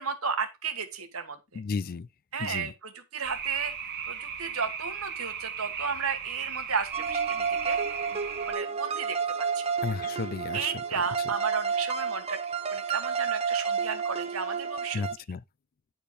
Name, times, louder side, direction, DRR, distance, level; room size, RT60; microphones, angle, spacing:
voice 1, 0.0-1.4 2.3-3.7 4.1-7.8 8.4-9.7 10.5-15.0, right 5 dB, 80° right, 1.6 m, -33 dB
voice 2, 1.5-2.1 2.4-2.7 9.8-10.7 14.9-15.4, left 5 dB, 45° left, 0.4 m, -33 dB
sound 1, 3.2-8.5, right 7 dB, 50° right, 1.1 m, -37 dB
sound 2, 6.9-15.1, right 6 dB, 30° right, 0.7 m, -31 dB
10.0 x 4.6 x 4.9 m
head